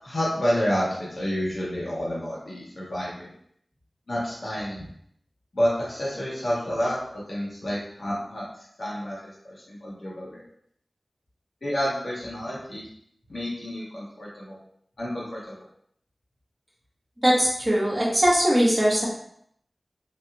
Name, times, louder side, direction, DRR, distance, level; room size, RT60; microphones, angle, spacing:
voice 1, 0.0-3.3 4.1-4.9 5.5-7.0 7.3-8.4 8.8-10.4 11.6-12.9 13.3-14.6 15.0-15.6, equal, 65° left, -7 dB, 1.3 m, -29 dB
voice 2, 17.2-19.1, equal, 20° right, -5 dB, 1.2 m, -20 dB
3.5 x 2.9 x 2.2 m, 0.69 s
wide cardioid pair, 65°, 0 cm